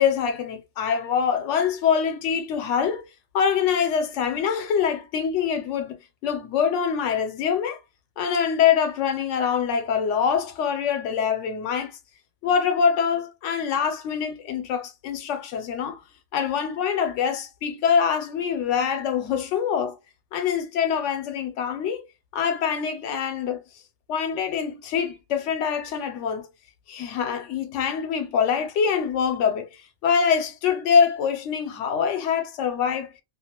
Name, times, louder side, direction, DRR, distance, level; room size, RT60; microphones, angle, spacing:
voice 1, 0.0-3.0 3.3-7.8 8.2-11.9 12.4-16.0 16.3-20.0 20.3-22.0 22.3-23.6 24.1-26.5 26.9-29.7 30.0-33.1, left 7 dB, 85° left, 0.9 m, -24 dB
2.4 x 2.2 x 2.9 m
omnidirectional pair, 1.2 m